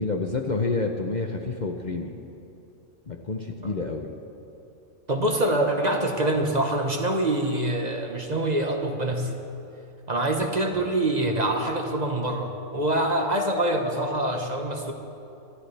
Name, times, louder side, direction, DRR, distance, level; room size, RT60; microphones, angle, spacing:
voice 1, 0.0-2.1 3.1-4.1 10.7-10.9, left 3 dB, 40° left, 2 dB, 0.8 m, -29 dB
voice 2, 5.1-9.4 10.1-14.9, right 1 dB, 35° right, 2 dB, 1.2 m, -25 dB
26.0 x 13.0 x 3.4 m, 2.7 s
omnidirectional pair, 1.4 m